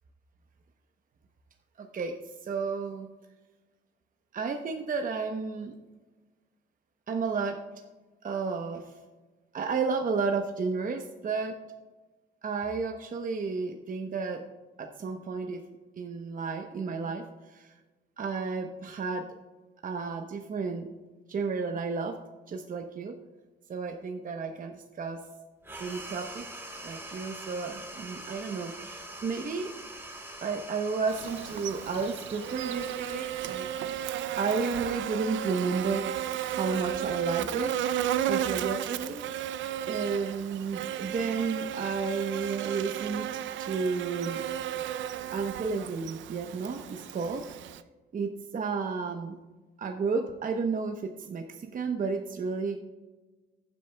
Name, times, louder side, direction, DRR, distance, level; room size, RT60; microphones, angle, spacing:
voice 1, 1.8-2.1 2.4-3.1 4.3-5.8 7.1-7.6 8.2-9.0 9.5-11.6 12.4-14.4 14.8-15.6 16.0-17.2 17.5-17.7 18.2-19.3 19.8-20.9 21.3-22.2 22.5-23.1 23.7-25.2 25.8-26.5 26.8-29.7 30.4-33.7 34.4-36.0 36.5-37.7 38.3-39.2 39.9-44.4 45.3-47.4 48.1-49.3 49.8-52.8, right 4 dB, 45° right, 4 dB, 0.9 m, -32 dB
sound 1, 25.6-34.5, right 1 dB, 10° right, 2.3 m, -44 dB
Buzz, 31.1-47.8, right 11 dB, 70° right, 0.5 m, -34 dB
15.0 x 8.4 x 2.3 m, 1.2 s
cardioid pair, 90°, 20 cm